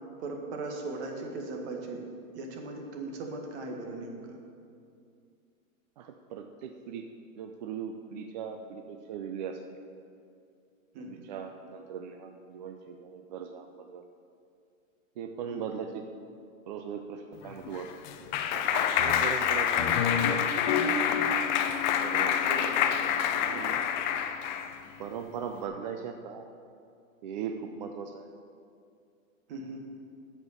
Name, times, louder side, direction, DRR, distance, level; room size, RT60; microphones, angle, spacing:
voice 1, 0.2-2.0 2.3-4.4 10.9-11.2 15.5-15.6 22.4-22.9 23.5-23.8 29.5-29.8, right 2 dB, 55° right, 2 dB, 1.8 m, -38 dB
voice 2, 6.0-7.1 7.4-9.6 11.0-14.1 15.2-16.0 16.7-17.9 18.5-20.5 22.0-22.5 23.0-23.8 25.0-26.5 27.2-28.3, right 7 dB, 35° right, 5 dB, 0.4 m, -39 dB
Clapping, 17.5-24.8, left 8 dB, 35° left, 0.5 m, -27 dB
8.3 x 7.3 x 6.7 m, 2.4 s
hypercardioid pair, 145°, 42 cm